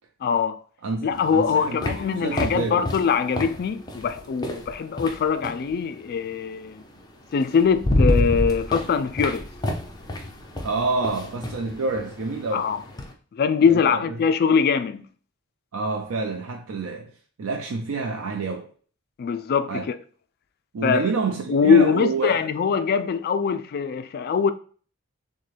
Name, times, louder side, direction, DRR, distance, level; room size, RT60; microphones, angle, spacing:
voice 1, 0.2-0.6 1.0-6.8 7.3-9.5 12.5-12.8 13.4-15.1 19.2-20.0 20.8-21.0 21.5-24.5, left 6 dB, 50° left, 0.3 m, -22 dB
voice 2, 0.8-2.8 10.6-12.7 13.7-14.2 15.7-17.1 17.4-18.7 19.7-19.9 20.7-22.5, right 3 dB, 75° right, 0.5 m, -28 dB
sound 1, 1.1-5.7 7.0-7.1 7.5-13.1, left 1 dB, 20° left, 0.7 m, -28 dB
6.5 x 2.2 x 3.3 m
head